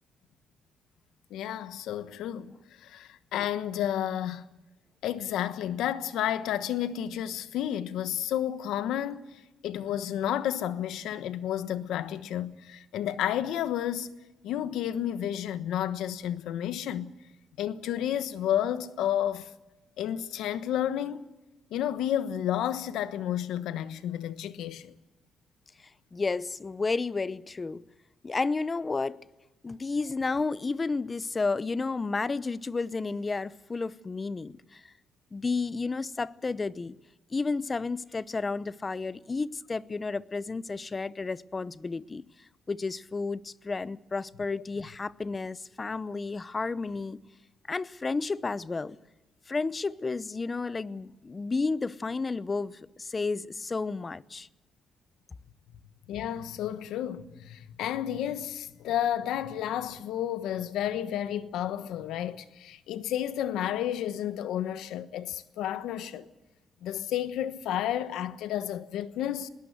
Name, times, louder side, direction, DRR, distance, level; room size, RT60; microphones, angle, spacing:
voice 1, 1.3-2.5 2.8-4.4 5.0-14.1 14.4-17.1 17.6-19.5 20.0-21.2 21.7-24.9 56.1-66.3 66.8-69.5, left 11 dB, 85° left, 1.2 m, -31 dB
voice 2, 26.1-27.8 28.2-29.2 29.6-34.9 35.3-37.0 37.3-42.2 42.7-47.2 47.7-49.0 49.5-54.5, left 4 dB, 30° left, 0.7 m, -32 dB
21.0 x 18.0 x 8.1 m
cardioid pair, 90°, 0 cm